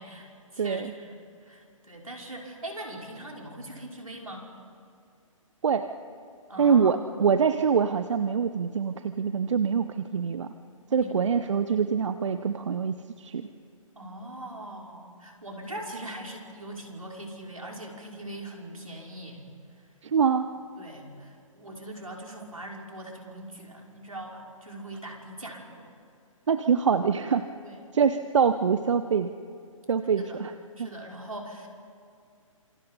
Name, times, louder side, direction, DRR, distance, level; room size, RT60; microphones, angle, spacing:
voice 1, 0.0-4.5 6.5-7.0 10.9-11.1 14.0-19.4 20.8-25.9 27.6-27.8 30.2-30.4 30.8-31.7, right 1 dB, 85° right, 0 dB, 5.5 m, -41 dB
voice 2, 0.6-0.9 5.6-5.9 6.6-10.5 10.9-13.5 20.0-20.5 26.5-27.4 27.9-29.3 29.9-30.5 30.8-30.9, right 6 dB, 60° right, 10 dB, 1.0 m, -24 dB
29.5 x 27.0 x 5.6 m, 2.3 s
figure-of-eight pair, 130°, 17 cm